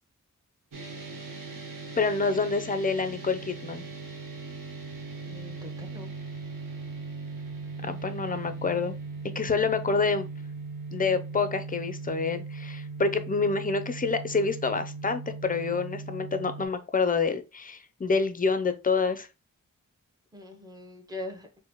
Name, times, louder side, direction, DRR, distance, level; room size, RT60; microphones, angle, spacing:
sound 1, 0.7-16.7, right 4 dB, 75° right, 0.9 m, -39 dB
voice 1, 2.0-3.8 7.8-9.0 9.3-10.3 10.9-19.3, left 4 dB, 25° left, 0.5 m, -27 dB
voice 2, 5.2-6.1 20.3-21.5, left 2 dB, 10° right, 0.9 m, -41 dB
4.0 x 2.1 x 2.9 m
wide cardioid pair, 70°, 33 cm